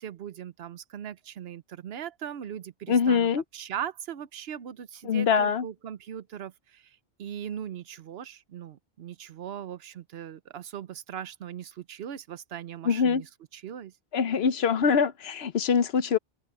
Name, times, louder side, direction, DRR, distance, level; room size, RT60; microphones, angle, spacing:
voice 1, 0.0-13.9, right 9 dB, 65° right, 0.9 m, -39 dB
voice 2, 2.9-3.4 5.0-5.7 12.8-13.2 14.1-16.2, left 6 dB, 70° left, 1.0 m, -23 dB
open air
omnidirectional pair, 1.1 m